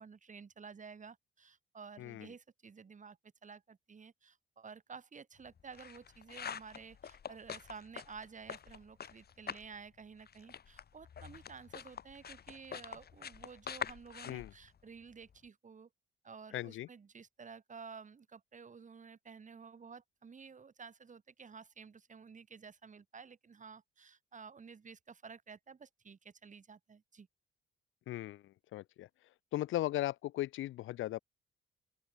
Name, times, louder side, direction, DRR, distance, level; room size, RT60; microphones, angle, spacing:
voice 1, 0.0-15.9 16.2-27.3, right 5 dB, 40° right, 7.8 m, -52 dB
sound 1, 5.4-9.8 10.0-15.4, left 7 dB, 50° left, 7.8 m, -46 dB
voice 2, 16.5-16.9 28.1-29.1 29.5-31.2, left 15 dB, 85° left, 3.4 m, -37 dB
open air
cardioid pair, 90°, 20 cm